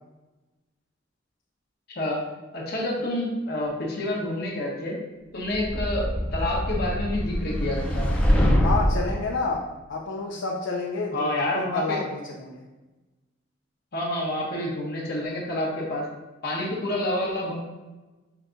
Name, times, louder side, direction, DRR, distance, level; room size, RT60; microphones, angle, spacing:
voice 1, 1.9-2.2 2.5-5.0 5.3-8.1 11.1-12.0 13.9-16.1 16.4-17.6, left 1 dB, 55° left, -3 dB, 1.1 m, -28 dB
Woosh dark deep long, 5.5-9.2, equal, 5° left, 0.6 m, -24 dB
voice 2, 8.6-11.3 11.7-12.6, left 3 dB, 80° left, -2 dB, 0.6 m, -29 dB
5.7 x 2.3 x 3.8 m, 1.1 s
head